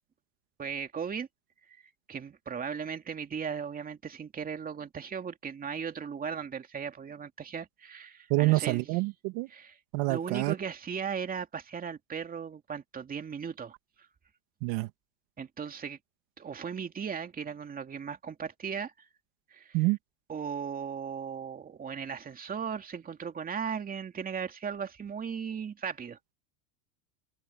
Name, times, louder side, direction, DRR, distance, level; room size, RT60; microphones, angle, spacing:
voice 1, 0.6-1.3 2.1-8.9 9.5-9.8 10.1-14.1 15.4-16.0 16.4-18.9 19.5-19.8 20.3-26.2, right 7 dB, 20° right, 2.5 m, -37 dB
voice 2, 8.3-9.5 9.9-10.5 14.6-14.9 19.7-20.0, right 23 dB, 55° right, 2.3 m, -27 dB
supercardioid pair, 140°, 46 cm